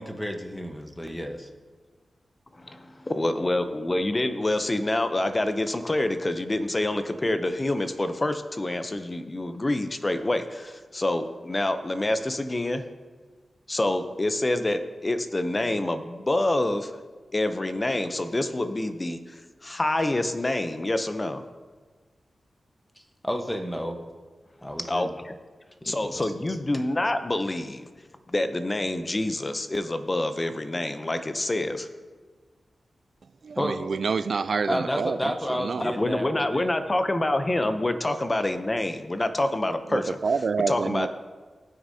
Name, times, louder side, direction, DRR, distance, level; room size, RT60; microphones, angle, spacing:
voice 1, 0.0-1.5 23.0-24.0 24.6-25.1 25.8-26.3 33.6-33.8 34.7-36.7 37.5-37.7, equal, 10° left, 1.0 m, -31 dB
voice 2, 2.6-12.8 13.7-16.9 17.3-21.4 24.8-25.3 25.8-27.9 28.3-31.9 35.8-40.2 40.7-41.1, left 1 dB, 30° left, 0.6 m, -27 dB
voice 3, 33.4-35.2 35.6-35.9 39.9-41.1, right 5 dB, 70° right, 0.3 m, -27 dB
16.0 x 6.2 x 2.8 m
cardioid pair, 60°, 0 cm